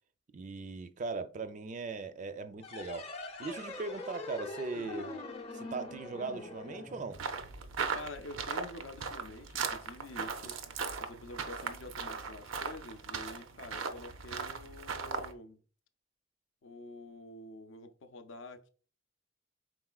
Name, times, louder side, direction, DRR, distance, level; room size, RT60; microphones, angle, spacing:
voice 1, 0.3-5.1 5.5-7.2, right 3 dB, 40° right, 0.4 m, -39 dB
sound 1, 2.6-7.8, left 2 dB, 30° left, 0.6 m, -44 dB
sound 2, 7.1-15.3, right 5 dB, 85° right, 0.5 m, -38 dB
voice 2, 7.9-15.6 16.6-18.7, left 2 dB, 75° left, 0.5 m, -48 dB
4.8 x 3.7 x 2.3 m
head